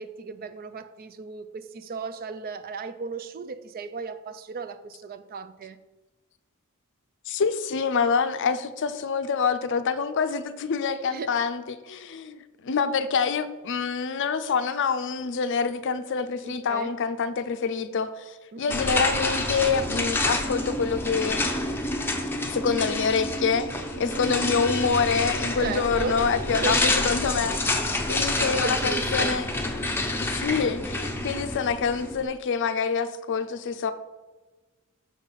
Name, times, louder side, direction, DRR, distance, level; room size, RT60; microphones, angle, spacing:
voice 1, 0.0-5.8 11.1-11.3 16.4-16.9 18.5-18.8 23.9-24.2 25.6-26.2 26.5-26.9 28.3-29.3, right 5 dB, 40° right, 0.4 m, -35 dB
voice 2, 7.3-21.4 22.5-29.5 30.2-33.9, left 5 dB, 55° left, 0.5 m, -26 dB
sound 1, 18.7-32.3, left 2 dB, 10° left, 0.6 m, -28 dB
6.1 x 4.1 x 5.5 m
head